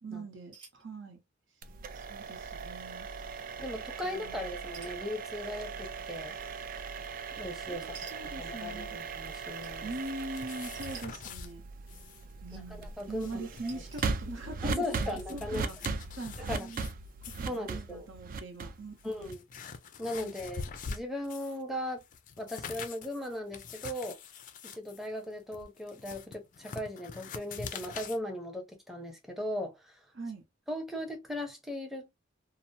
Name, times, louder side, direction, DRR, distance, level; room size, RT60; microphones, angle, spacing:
voice 1, 0.0-1.2 1.9-3.1 4.0-4.6 7.7-9.1 9.8-11.6 12.4-16.9 17.4-19.3 20.2-20.3 30.1-30.4, right 2 dB, 70° right, 0.9 m, -42 dB
sound 1, 0.5-0.8 1.9-2.0 2.3-2.6 4.7-5.1 6.4-6.5 7.9-8.2 9.6-9.7 10.8-11.1 12.1-12.6 13.7-14.1, right 5 dB, 25° right, 0.9 m, -50 dB
sound 2, 1.6-19.5, right 4 dB, 45° right, 0.3 m, -39 dB
voice 2, 3.6-6.4 7.4-9.9 12.5-13.5 14.6-15.7 16.4-16.7 17.5-18.1 19.0-19.4 20.0-22.0 22.4-24.2 24.6-30.0 30.7-32.1, left 1 dB, ahead, 0.7 m, -38 dB
sound 3, 10.0-11.5 11.9-12.2 12.5-12.6 13.0-14.1 14.6-16.9 17.2-17.6 18.3-18.4 18.9-21.6 22.0-28.2, left 5 dB, 40° left, 0.4 m, -44 dB
2.8 x 2.0 x 2.6 m
head